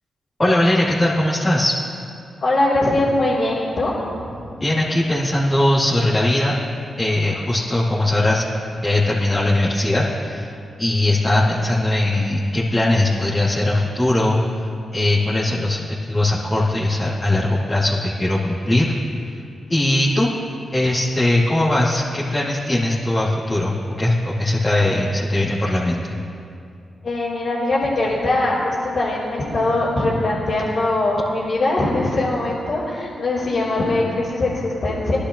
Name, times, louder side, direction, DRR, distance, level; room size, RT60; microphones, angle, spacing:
voice 1, 0.4-1.8 4.6-6.6 7.0-8.5 8.8-10.5 10.8-18.9 19.7-20.3 20.7-26.2, left 1 dB, 25° left, -8 dB, 2.8 m, -20 dB
voice 2, 2.4-3.9 4.2-4.3 27.0-35.2, left 2 dB, 60° left, -11 dB, 3.5 m, -21 dB
20.5 x 11.5 x 3.2 m, 2.5 s
supercardioid pair, 45°, 0 cm